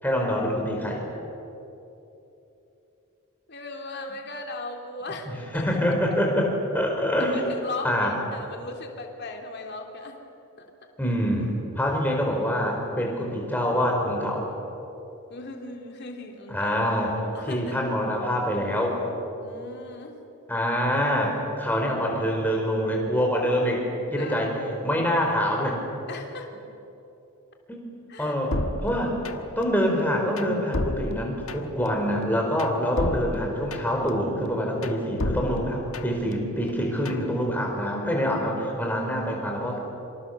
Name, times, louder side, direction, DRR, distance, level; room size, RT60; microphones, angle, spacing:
voice 1, 0.0-1.0 5.3-7.4 7.8-8.1 11.0-11.5 11.8-14.5 16.5-17.1 17.5-19.1 20.5-23.8 24.1-24.5 24.8-25.8 27.7-27.8 28.2-29.2 29.6-39.8, equal, 10° left, 0 dB, 4.8 m, -25 dB
voice 2, 3.5-6.2 7.2-10.2 10.6-10.7 15.3-16.8 17.3-17.8 19.4-20.3 24.2-24.5 26.1-26.5 28.1-28.3 39.5-39.8, left 2 dB, 50° left, 2 dB, 3.1 m, -38 dB
sound 1, 28.5-29.6 30.0-31.9 32.2-34.1 34.4-36.3 36.7-37.3, left 1 dB, 70° left, 1.4 m, -32 dB
27.0 x 26.0 x 6.9 m, 3.0 s
head